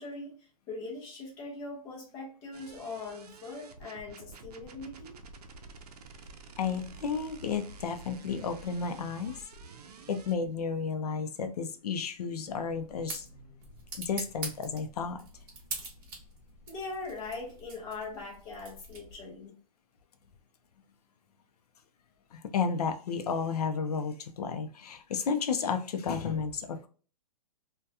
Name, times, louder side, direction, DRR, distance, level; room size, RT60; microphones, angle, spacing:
voice 1, 0.0-5.2 16.7-19.5, left 3 dB, 15° left, -3 dB, 0.5 m, -41 dB
sound 1, 2.5-10.3, right 4 dB, 85° right, 0.5 m, -49 dB
voice 2, 6.6-9.4 10.1-13.3 14.0-15.2 22.3-26.9, left 5 dB, 80° left, 8 dB, 0.5 m, -32 dB
sound 2, 12.4-19.4, right 3 dB, 35° right, 0.9 m, -44 dB
2.7 x 2.2 x 2.3 m, 0.39 s
hypercardioid pair, 175°, 20 cm